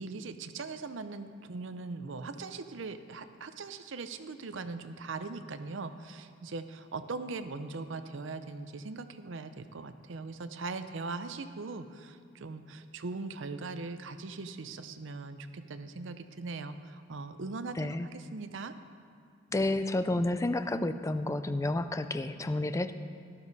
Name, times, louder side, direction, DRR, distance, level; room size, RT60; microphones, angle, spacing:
voice 1, 0.0-18.7, right 3 dB, 60° right, 10 dB, 0.6 m, -40 dB
voice 2, 17.8-18.1 19.5-22.9, left 2 dB, 15° left, 11 dB, 0.3 m, -30 dB
12.5 x 12.0 x 4.1 m, 2.4 s
head